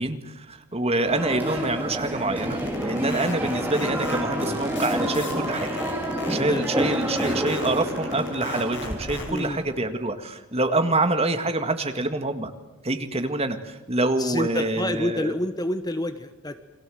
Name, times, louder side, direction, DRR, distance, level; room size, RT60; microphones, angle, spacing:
voice 1, 0.0-5.7 6.3-12.5 12.8-15.3, right 2 dB, 30° right, 8 dB, 2.0 m, -26 dB
sound 1, 1.0-9.7, equal, 10° right, 4.4 m, -29 dB
sound 2, 2.4-9.5, left 3 dB, 55° left, 7.7 m, -37 dB
sound 3, 3.5-8.9, right 1 dB, 60° right, 6.0 m, -39 dB
voice 2, 9.3-9.6 14.2-16.6, left 1 dB, 20° left, 10 dB, 1.2 m, -28 dB
29.5 x 23.5 x 7.9 m, 1.0 s
head